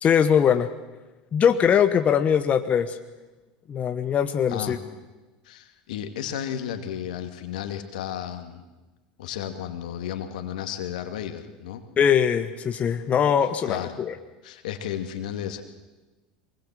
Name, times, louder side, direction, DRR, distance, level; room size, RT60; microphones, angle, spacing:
voice 1, 0.0-0.7 1.3-3.0 3.7-4.8 12.0-14.1, left 8 dB, 35° left, 8 dB, 1.2 m, -21 dB
voice 2, 5.4-8.6 9.2-11.9 13.6-14.0 14.4-15.6, left 10 dB, 75° left, 7 dB, 2.4 m, -33 dB
24.0 x 20.5 x 7.7 m, 1.2 s
hypercardioid pair, 90°, 4 cm